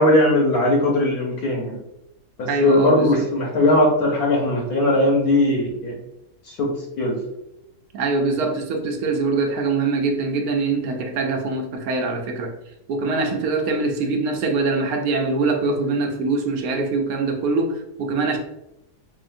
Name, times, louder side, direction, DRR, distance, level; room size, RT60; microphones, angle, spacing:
voice 1, 0.0-1.8 2.4-5.9 6.6-6.7 7.0-7.2, left 1 dB, 80° left, -1 dB, 1.3 m, -19 dB
voice 2, 2.5-3.3 7.9-12.5 12.9-18.4, right 3 dB, 75° right, 3 dB, 1.2 m, -23 dB
5.0 x 2.8 x 2.5 m, 0.88 s
omnidirectional pair, 1.6 m